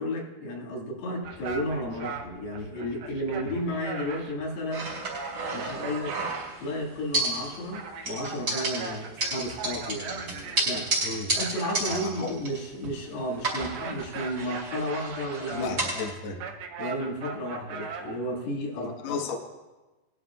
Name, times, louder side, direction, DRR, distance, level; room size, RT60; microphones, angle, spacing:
voice 1, 0.0-4.9 5.5-6.2 6.6-10.9 11.4-15.7 16.8-19.2, equal, 85° left, -3 dB, 3.9 m, -33 dB
sound 1, 1.2-18.5, right 5 dB, 70° right, 2.3 m, -40 dB
sound 2, 4.7-6.7 7.1-7.8 8.0-13.0 13.4-16.1, right 2 dB, 30° right, 3.0 m, -32 dB
voice 2, 11.0-11.3 11.9-12.3 15.5-16.4 18.8-19.4, left 4 dB, 60° left, 1 dB, 2.1 m, -33 dB
22.0 x 11.5 x 2.3 m, 1.1 s
omnidirectional pair, 4.4 m